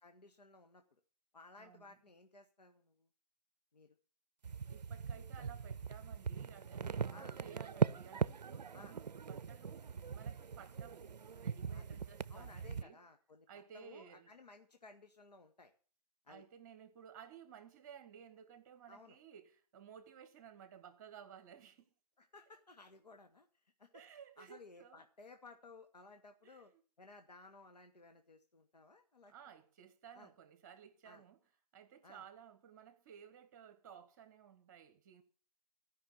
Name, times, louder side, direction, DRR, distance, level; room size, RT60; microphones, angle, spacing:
voice 1, 0.0-0.8 1.3-3.1 3.7-4.0 5.1-5.3 7.1-7.4 8.7-9.0 11.7-11.9 12.3-15.7 16.2-16.4 18.9-19.2 22.2-23.5 23.8-23.9 24.4-26.7 27.0-29.3 30.1-30.3 31.0-31.2 32.0-32.2, left 3 dB, 80° left, 1.5 m, -58 dB
voice 2, 1.6-2.0 4.7-7.1 7.4-13.0 13.5-14.3 16.3-21.9 23.9-25.0 26.4-26.6 29.3-31.4 31.7-35.2, right 8 dB, 30° right, 1.3 m, -57 dB
sound 1, 4.4-12.8, right 6 dB, 85° right, 0.5 m, -40 dB
13.0 x 5.8 x 8.5 m
figure-of-eight pair, 150°, 21 cm